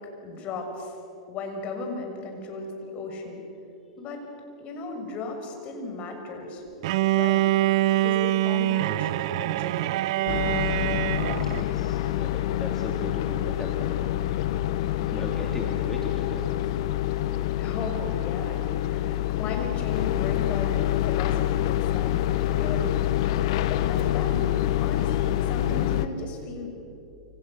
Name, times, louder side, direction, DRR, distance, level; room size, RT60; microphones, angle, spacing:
voice 1, 0.2-0.9 1.3-3.4 4.0-4.2 4.6-6.6 7.1-7.5 7.9-9.9 17.6-22.2 22.5-23.1 23.7-26.7, left 3 dB, 40° left, 3 dB, 6.5 m, -36 dB
Bowed string instrument, 6.8-11.7, right 16 dB, 60° right, 0.6 m, -24 dB
sound 1, 10.3-26.1, left 13 dB, 60° left, 1.1 m, -26 dB
voice 2, 10.5-10.9 11.3-14.5 14.8-16.5, left 1 dB, 10° left, 0 dB, 3.1 m, -38 dB
28.5 x 27.0 x 6.8 m, 2.9 s
hypercardioid pair, 105°, 3 cm